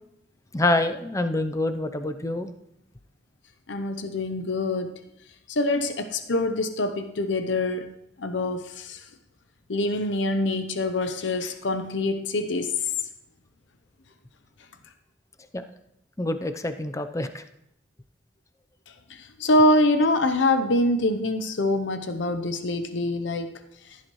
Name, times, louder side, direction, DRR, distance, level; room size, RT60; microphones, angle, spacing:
voice 1, 0.5-2.5 16.2-17.4, left 2 dB, 15° left, 8 dB, 0.6 m, -26 dB
voice 2, 3.7-4.9 5.5-7.9 8.2-9.0 9.7-12.7 19.1-23.6, left 1 dB, 85° left, 9 dB, 0.8 m, -25 dB
15.5 x 10.5 x 3.1 m, 0.81 s
head